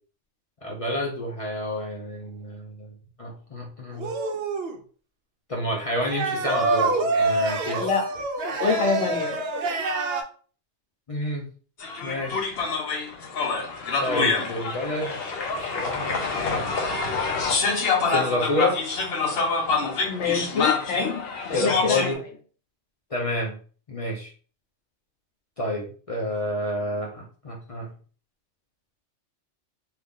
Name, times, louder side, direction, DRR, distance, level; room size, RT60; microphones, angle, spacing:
voice 1, 0.6-4.1 5.5-7.9 11.1-11.4 12.0-12.6 14.0-15.2 15.7-16.7 18.1-18.8 21.5-22.2 23.1-23.6 23.9-24.3 25.6-27.9, left 1 dB, 45° left, -2 dB, 0.5 m, -29 dB
sound 1, 4.0-4.8 6.0-10.2, right 2 dB, 65° right, 0.7 m, -26 dB
voice 2, 8.6-9.4 20.1-21.1 21.5-22.1, left 5 dB, 85° left, 2 dB, 1.1 m, -26 dB
sound 2, 11.8-22.1, left 4 dB, 60° left, 0.8 m, -26 dB
2.7 x 2.5 x 3.5 m, 0.41 s
omnidirectional pair, 1.2 m